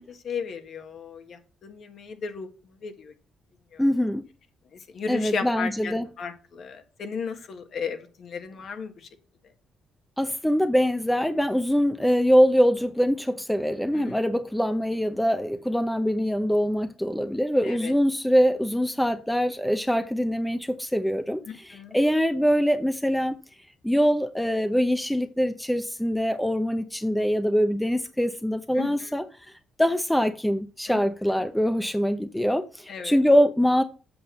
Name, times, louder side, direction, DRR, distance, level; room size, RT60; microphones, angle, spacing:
voice 1, 0.0-2.5 2.8-3.1 3.7-3.8 4.9-8.9 13.9-14.2 17.6-17.9 21.5-22.0 28.8-29.1 30.9-31.0 32.9-33.2, left 5 dB, 60° left, 1.7 m, -35 dB
voice 2, 3.8-4.2 5.1-6.1 10.2-23.4 23.8-29.2 29.8-33.8, equal, 5° left, 0.7 m, -23 dB
7.8 x 6.0 x 6.9 m
cardioid pair, 90°, 0 cm